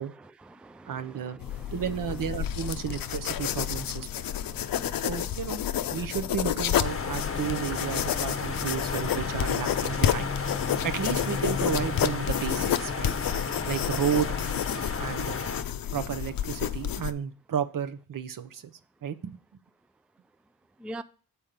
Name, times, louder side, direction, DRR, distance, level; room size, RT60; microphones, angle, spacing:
voice 1, 0.0-1.7 3.5-3.8 4.1-5.1 20.8-21.0, right 1 dB, 5° right, 0.3 m, -46 dB
voice 2, 0.8-1.4 1.7-4.2 5.0-5.6 5.9-10.3 10.8-13.1 13.7-14.3 15.0-15.4 15.9-18.7 19.0-19.4, right 8 dB, 65° right, 0.7 m, -32 dB
sound 1, 1.4-17.1, left 10 dB, 75° left, 0.6 m, -30 dB
sound 2, 6.8-15.6, left 4 dB, 40° left, 0.8 m, -33 dB
7.1 x 4.4 x 5.1 m
cardioid pair, 60°, 35 cm